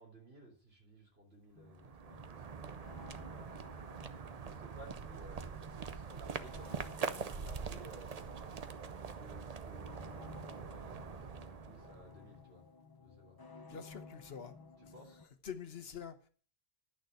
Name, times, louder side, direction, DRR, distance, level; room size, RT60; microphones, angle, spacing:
voice 1, 0.0-8.1 9.1-12.6 13.0-13.4 14.8-15.2, right 1 dB, 70° right, 3.9 m, -57 dB
sound 1, 1.5-15.3, left 4 dB, 25° left, 0.8 m, -56 dB
sound 2, 1.6-12.4, right 6 dB, 40° right, 0.7 m, -44 dB
voice 2, 13.6-14.6 15.4-16.3, left 7 dB, 70° left, 1.2 m, -46 dB
11.0 x 6.5 x 6.4 m
omnidirectional pair, 1.1 m